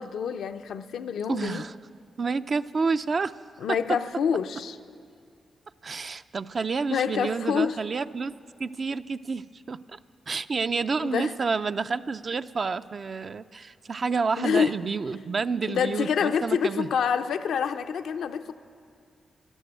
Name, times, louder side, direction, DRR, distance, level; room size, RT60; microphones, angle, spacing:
voice 1, 0.0-1.6 3.6-4.8 6.9-7.8 11.0-11.3 14.4-14.7 15.7-18.6, left 7 dB, 85° left, 8 dB, 0.5 m, -27 dB
voice 2, 1.3-1.8 2.2-3.3 5.8-8.3 8.6-10.0 10.3-16.9, right 4 dB, 50° right, 11 dB, 0.4 m, -29 dB
12.5 x 12.0 x 8.8 m, 2.3 s
cardioid pair, 70°, 0 cm